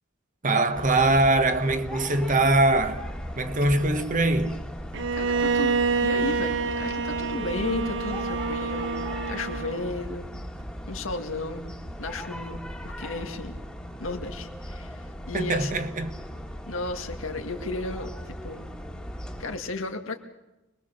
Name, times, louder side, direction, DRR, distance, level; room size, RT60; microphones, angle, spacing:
voice 1, 0.4-3.1 3.4-4.7 15.3-16.1, right 2 dB, 40° right, 1.3 m, -22 dB
sound 1, 0.7-19.6, equal, 5° left, 1.9 m, -38 dB
Bowed string instrument, 4.9-10.0, right 4 dB, 65° right, 0.8 m, -27 dB
voice 2, 5.1-5.8 6.0-9.0 9.3-10.3 10.9-11.7 12.0-13.6 14.0-15.9 16.7-18.7 19.4-20.2, left 2 dB, 85° left, 2.1 m, -34 dB
25.0 x 21.0 x 6.7 m
head